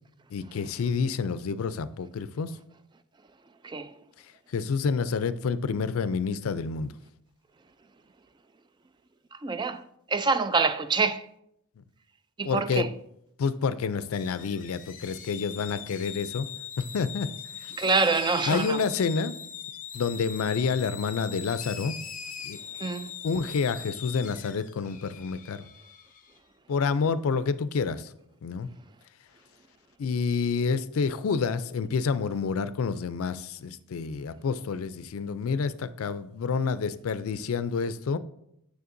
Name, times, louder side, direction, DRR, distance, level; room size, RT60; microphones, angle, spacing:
voice 1, 0.3-2.6 4.5-6.9 11.8-11.9 12.4-12.9 13.4-16.5 16.8-17.3 17.6-17.9 18.5-19.4 19.9-22.0 22.4-22.6 23.2-25.7 26.7-28.1 28.4-28.7 30.0-38.2, left 5 dB, 75° left, 0.4 m, -28 dB
voice 2, 3.6-3.9 9.3-9.8 10.1-11.3 12.4-12.9 17.8-18.8 22.8-23.1, right 4 dB, 20° right, 0.3 m, -26 dB
sound 1, 14.1-26.4, left 8 dB, 40° left, 0.7 m, -41 dB
9.5 x 6.4 x 2.6 m
head